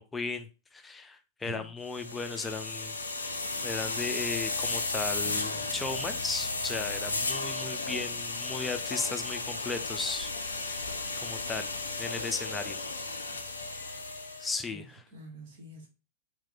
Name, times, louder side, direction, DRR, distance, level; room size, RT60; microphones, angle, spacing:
voice 1, 0.0-2.9 3.6-10.9 11.2-11.7 12.0-12.8 14.4-15.0, left 4 dB, 15° left, 0.4 m, -36 dB
voice 2, 1.4-1.7 14.7-15.9, right 2 dB, 55° right, 1.2 m, -46 dB
sound 1, 1.9-14.6, left 3 dB, 75° left, 0.4 m, -34 dB
sound 2, 4.9-9.3, right 2 dB, 75° right, 0.8 m, -51 dB
3.0 x 2.2 x 3.7 m
figure-of-eight pair, 90°, 0 cm